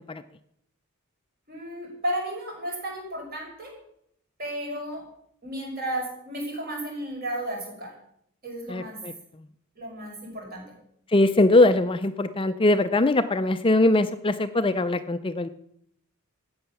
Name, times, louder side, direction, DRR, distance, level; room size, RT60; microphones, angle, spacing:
voice 1, 1.5-3.7 4.4-5.0 5.4-7.9 8.4-9.0 9.8-10.7, right 1 dB, 45° right, -1 dB, 5.9 m, -33 dB
voice 2, 8.7-9.1 11.1-15.5, left 2 dB, 25° left, 10 dB, 0.5 m, -21 dB
13.5 x 8.7 x 7.0 m, 0.72 s
head